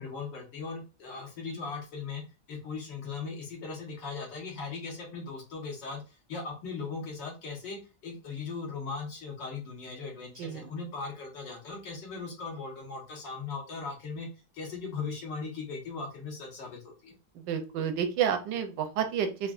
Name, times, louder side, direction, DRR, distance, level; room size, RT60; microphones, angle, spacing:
voice 1, 0.0-2.2 2.5-14.3 14.5-17.2, left 4 dB, 90° left, -1 dB, 1.9 m, -38 dB
voice 2, 17.5-19.5, right 8 dB, 85° right, 7 dB, 1.3 m, -30 dB
4.8 x 2.3 x 2.4 m, 0.31 s
omnidirectional pair, 1.9 m